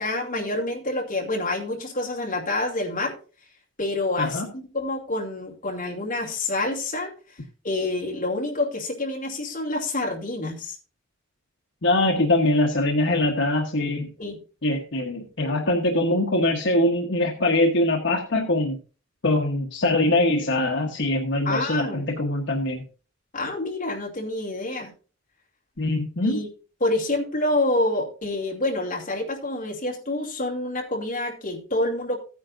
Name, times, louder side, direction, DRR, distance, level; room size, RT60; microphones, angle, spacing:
voice 1, 0.0-3.1 3.8-7.1 7.6-10.8 14.2-14.4 21.4-22.2 23.3-24.9 26.2-26.5 26.8-32.2, left 2 dB, 45° left, -1 dB, 2.6 m, -27 dB
voice 2, 11.8-14.1 14.6-18.8 19.2-22.8 25.8-26.4, left 1 dB, 65° left, 1 dB, 1.2 m, -23 dB
15.0 x 9.6 x 2.6 m, 0.37 s
head